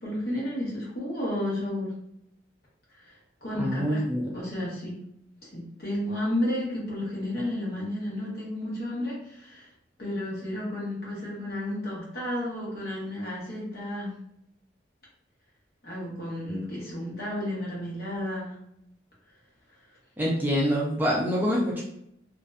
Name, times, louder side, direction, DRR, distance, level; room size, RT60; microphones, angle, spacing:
voice 1, 0.0-1.9 2.9-3.1 3.4-4.0 4.3-5.0 5.5-9.7 10.0-14.1 15.8-18.5, left 1 dB, 55° left, -5 dB, 0.9 m, -32 dB
voice 2, 3.5-4.3 20.2-21.8, equal, 10° right, -4 dB, 0.4 m, -25 dB
2.5 x 2.1 x 2.4 m, 0.75 s
head